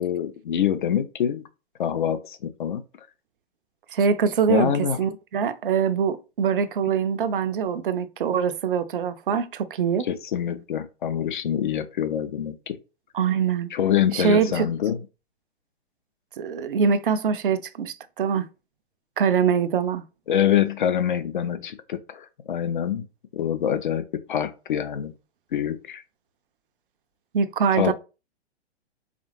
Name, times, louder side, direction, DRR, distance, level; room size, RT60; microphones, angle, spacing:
voice 1, 0.0-1.4 1.8-2.8 4.5-5.0 10.0-12.8 13.7-15.0 20.3-23.1 23.3-25.1 25.5-26.0 27.8-27.9, left 9 dB, 45° left, 0.6 m, -25 dB
voice 2, 3.9-4.7 5.0-10.1 13.1-13.7 14.1-14.7 16.4-18.5 19.2-20.0 27.3-27.9, right 6 dB, 50° right, 0.5 m, -23 dB
4.1 x 3.4 x 3.1 m
figure-of-eight pair, 115°, 33 cm